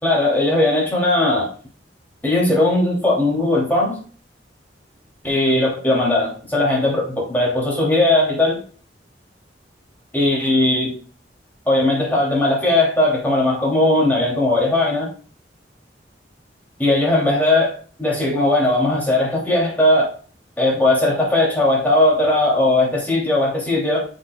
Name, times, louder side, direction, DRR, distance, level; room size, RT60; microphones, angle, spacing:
voice 1, 0.0-1.5 2.2-4.0 5.2-8.6 10.1-10.9 11.6-15.1 16.8-17.7 18.0-20.1 20.6-24.0, left 2 dB, 10° left, -4 dB, 3.1 m, -18 dB
7.8 x 7.7 x 2.4 m, 0.41 s
head